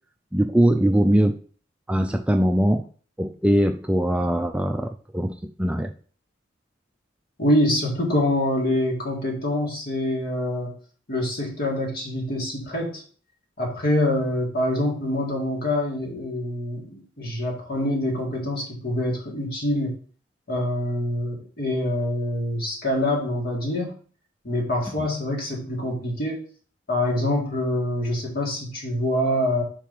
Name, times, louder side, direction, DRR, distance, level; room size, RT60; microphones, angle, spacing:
voice 1, 0.3-1.4 1.9-2.8 3.2-5.9, right 1 dB, 5° right, 5 dB, 0.3 m, -21 dB
voice 2, 7.4-10.7 11.1-13.0 13.6-20.0 20.5-23.9 24.4-26.4 26.9-29.6, left 1 dB, 50° left, -1 dB, 2.1 m, -25 dB
4.7 x 4.6 x 5.4 m, 0.42 s
head